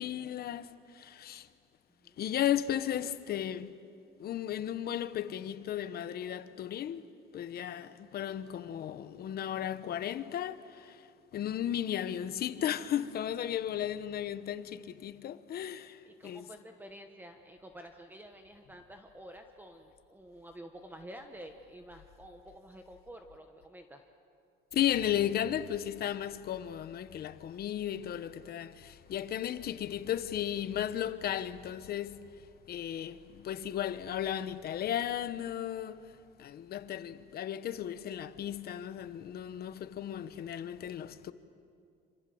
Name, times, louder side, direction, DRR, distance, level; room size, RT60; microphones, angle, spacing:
voice 1, 0.0-1.5 2.2-3.7 4.2-7.0 7.3-11.0 11.3-16.5 24.7-32.2 32.7-36.1 36.4-41.3, left 10 dB, 50° left, 1.0 m, -35 dB
voice 2, 16.1-24.0, right 1 dB, 10° right, 1.2 m, -50 dB
27.0 x 26.5 x 7.8 m
cardioid pair, 150°, 20 cm